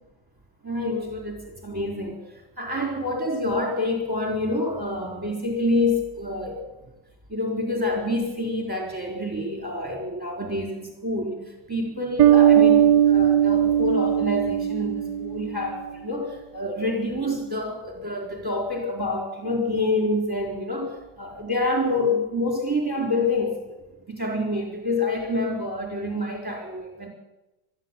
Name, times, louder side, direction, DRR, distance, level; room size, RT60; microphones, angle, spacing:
voice 1, 0.6-2.2 2.6-6.6 7.3-23.8 24.1-27.1, left 2 dB, 10° right, 1 dB, 4.4 m, -27 dB
Bass guitar, 12.2-15.7, right 10 dB, 65° right, 1.4 m, -18 dB
21.5 x 13.5 x 9.2 m, 0.99 s
omnidirectional pair, 2.1 m